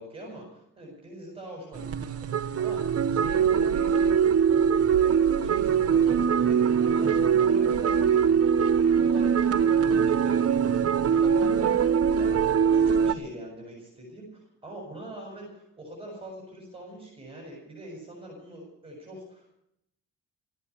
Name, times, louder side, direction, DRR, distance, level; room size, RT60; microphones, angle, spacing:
voice 1, 0.0-4.6 4.9-10.4 10.7-11.8 12.1-19.5, right 1 dB, 20° right, -1 dB, 7.3 m, -43 dB
sound 1, 1.7-13.1, right 7 dB, 50° right, 1.1 m, -22 dB
15.0 x 11.0 x 8.4 m, 0.75 s
cardioid pair, 90°, 30 cm